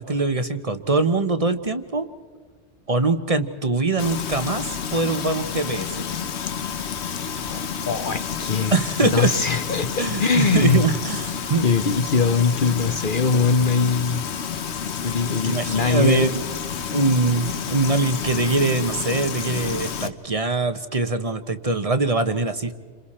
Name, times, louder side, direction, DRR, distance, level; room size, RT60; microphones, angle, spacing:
voice 1, 0.0-2.1 2.9-6.1 8.7-9.3 10.0-11.7 15.4-16.4 16.9-22.7, right 3 dB, 35° right, 10 dB, 1.0 m, -23 dB
Frying (food), 4.0-20.1, left 7 dB, 70° left, 1.2 m, -30 dB
voice 2, 7.5-8.7 9.1-10.8 11.6-14.3 15.0-16.3, left 5 dB, 50° left, 9 dB, 0.9 m, -22 dB
29.5 x 26.5 x 4.3 m, 1.5 s
omnidirectional pair, 1.2 m